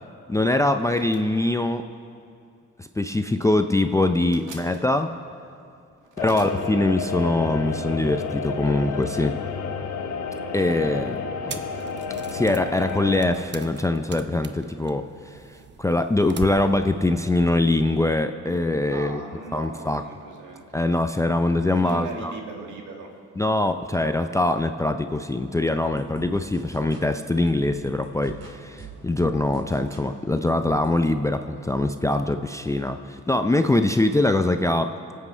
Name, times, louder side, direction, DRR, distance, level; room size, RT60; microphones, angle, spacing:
voice 1, 0.3-1.8 2.8-5.2 6.2-9.4 10.5-11.6 12.3-15.4 15.8-19.2 19.5-20.0 20.7-22.3 23.4-34.9, left 2 dB, 10° left, 8 dB, 0.5 m, -23 dB
voice 2, 6.1-6.4 18.9-20.8 21.7-23.1, right 4 dB, 80° right, 1 dB, 2.0 m, -38 dB
sound 1, 6.2-13.3, left 5 dB, 65° left, 1.1 m, -31 dB
sound 2, 11.5-18.2, right 6 dB, 35° right, 0.8 m, -42 dB
sound 3, 25.9-31.2, right 5 dB, 55° right, 2.8 m, -45 dB
24.0 x 8.4 x 4.5 m, 2.4 s
cardioid pair, 90°, 30 cm